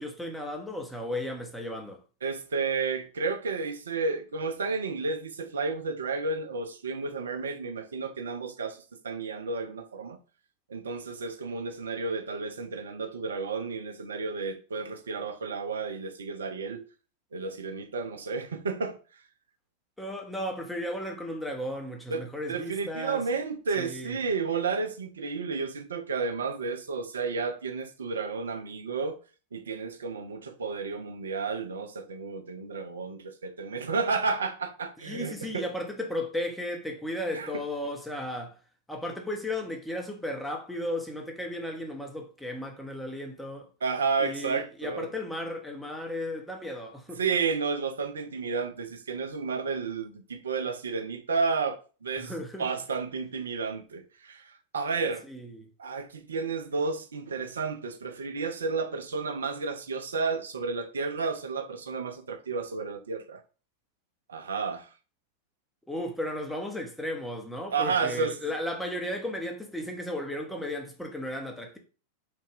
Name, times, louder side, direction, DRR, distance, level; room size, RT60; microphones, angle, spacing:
voice 1, 0.0-2.0 20.0-23.2 23.8-24.2 35.0-38.6 38.9-43.7 44.2-47.2 52.2-52.7 55.3-55.7 65.9-71.8, left 1 dB, 5° left, 0.7 m, -35 dB
voice 2, 2.2-8.8 9.0-10.2 10.7-16.8 17.3-19.0 22.1-29.2 29.5-35.7 37.3-37.6 43.8-45.1 47.2-52.3 52.6-55.2 55.8-63.4 64.3-64.9 67.7-68.4, right 4 dB, 70° right, 0.4 m, -32 dB
3.2 x 2.1 x 3.2 m
figure-of-eight pair, 90°, 0 cm